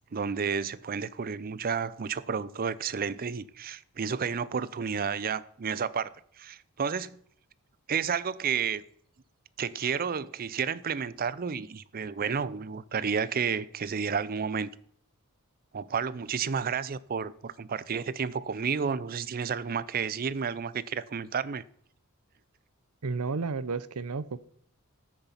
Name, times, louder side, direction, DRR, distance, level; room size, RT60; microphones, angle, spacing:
voice 1, 0.1-6.1 6.4-7.2 7.9-8.8 9.6-14.7 15.7-21.6, right 6 dB, 40° right, 0.5 m, -31 dB
voice 2, 23.0-24.4, right 4 dB, 90° right, 0.7 m, -32 dB
14.0 x 6.8 x 5.7 m
head